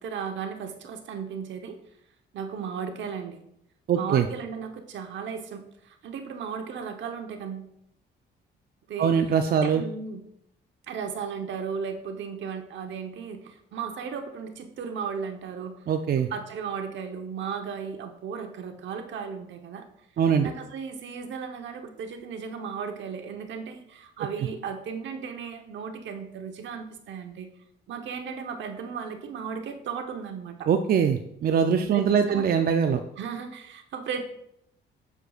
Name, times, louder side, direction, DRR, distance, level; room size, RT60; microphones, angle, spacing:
voice 1, 0.0-1.8 2.3-3.4 3.9-7.7 8.9-9.2 9.6-10.2 10.9-15.9 16.3-19.9 20.4-27.5 27.9-30.7 31.7-32.5 33.2-34.2, right 6 dB, 70° right, 5 dB, 1.0 m, -35 dB
voice 2, 3.9-4.3 9.0-9.8 15.9-16.3 20.2-20.5 30.7-33.0, right 7 dB, 50° right, 7 dB, 0.5 m, -22 dB
7.5 x 6.6 x 2.4 m, 0.76 s
cardioid pair, 90°, 20 cm